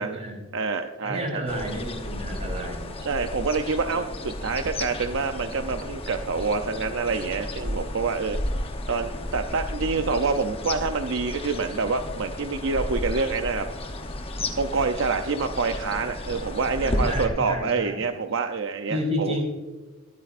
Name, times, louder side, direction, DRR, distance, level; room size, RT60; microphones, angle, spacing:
voice 1, 0.0-0.5 1.0-2.9 16.8-18.1 18.9-19.4, equal, 30° right, 0 dB, 4.0 m, -31 dB
voice 2, 0.5-1.4 3.0-8.4 8.9-13.7 14.6-19.4, right 4 dB, 60° right, 6 dB, 0.6 m, -27 dB
sound 1, 1.5-17.3, left 1 dB, 25° left, 0.9 m, -33 dB
22.0 x 8.4 x 2.5 m, 1.3 s
head